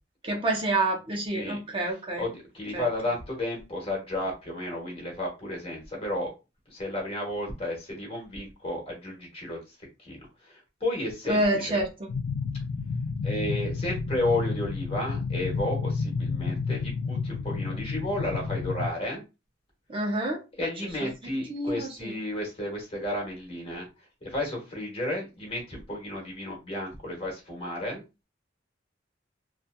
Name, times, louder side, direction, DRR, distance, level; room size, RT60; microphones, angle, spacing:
voice 1, 0.2-2.3 2.7-2.8 11.3-11.9 19.9-20.4 21.5-22.1, right 1 dB, 30° right, 0 dB, 0.5 m, -27 dB
voice 2, 2.1-6.3 6.7-9.6 10.0-10.2 10.4-11.8 13.2-19.2 20.6-23.9 24.2-28.0, left 1 dB, 30° left, -2 dB, 1.1 m, -32 dB
sound 1, 12.1-18.9, left 4 dB, 80° left, 0.3 m, -30 dB
2.7 x 2.3 x 2.2 m, 0.27 s
head